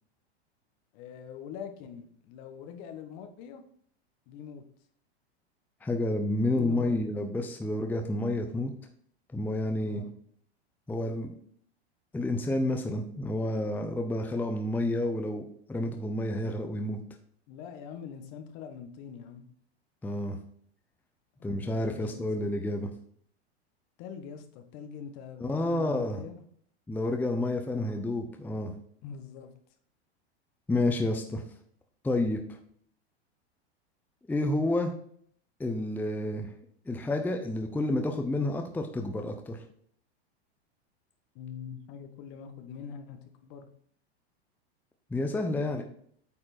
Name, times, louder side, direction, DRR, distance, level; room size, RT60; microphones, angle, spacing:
voice 1, 0.9-3.6 4.3-4.6 6.5-7.0 9.8-10.1 17.5-19.4 21.4-22.5 24.0-26.3 27.7-28.1 29.0-29.5 41.3-43.7 45.5-45.8, left 7 dB, 50° left, 7 dB, 1.3 m, -44 dB
voice 2, 5.8-8.7 9.3-10.0 10.9-11.3 12.1-17.0 20.0-20.4 21.4-22.9 25.4-26.2 26.9-28.7 30.7-31.4 32.0-32.4 34.3-34.9 35.6-36.5 36.9-39.6 45.1-45.8, left 1 dB, 5° left, 5 dB, 0.6 m, -30 dB
8.8 x 4.3 x 4.3 m, 0.62 s
hypercardioid pair, 110°, 33 cm